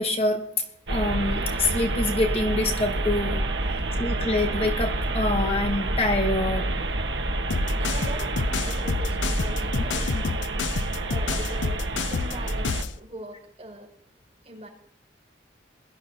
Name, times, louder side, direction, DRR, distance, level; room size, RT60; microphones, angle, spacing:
voice 1, 0.0-3.4 4.0-6.7 10.1-10.2, left 2 dB, 30° left, 4 dB, 1.1 m, -26 dB
sound 1, 0.9-12.8, right 1 dB, 75° right, 1.4 m, -28 dB
sound 2, 7.5-13.0, left 5 dB, 80° left, 0.6 m, -29 dB
voice 2, 7.8-13.9 14.4-14.7, right 1 dB, 35° right, -3 dB, 5.7 m, -41 dB
22.0 x 12.0 x 2.8 m, 0.76 s
head